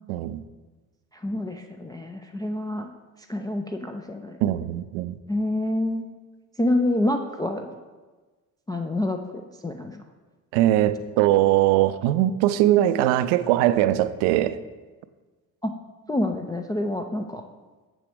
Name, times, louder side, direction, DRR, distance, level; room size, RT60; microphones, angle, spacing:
voice 1, 0.1-0.4 4.4-5.2 10.5-14.6, right 13 dB, 65° right, 0.5 m, -21 dB
voice 2, 1.2-2.9 3.3-4.4 5.3-6.1 6.6-7.7 8.7-10.0 15.6-15.7 16.1-17.4, left 1 dB, 10° left, 0.3 m, -27 dB
7.6 x 6.1 x 3.3 m
figure-of-eight pair, 45°, 49 cm